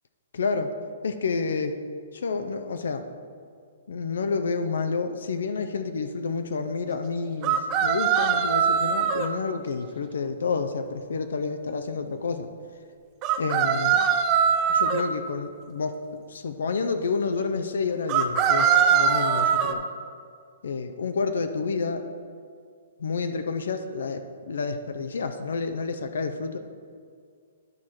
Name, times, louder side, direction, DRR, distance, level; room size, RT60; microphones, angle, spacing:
voice 1, 0.3-0.7 1.0-1.8 2.1-3.1 3.9-12.5 13.4-14.0 14.7-19.8 20.6-22.1 23.0-26.6, left 4 dB, 80° left, 8 dB, 0.6 m, -29 dB
sound 1, 7.4-9.3 13.2-15.0 18.1-19.7, right 7 dB, 25° right, 0.4 m, -22 dB
11.0 x 4.6 x 4.3 m, 2.1 s
hypercardioid pair, 165°, 0 cm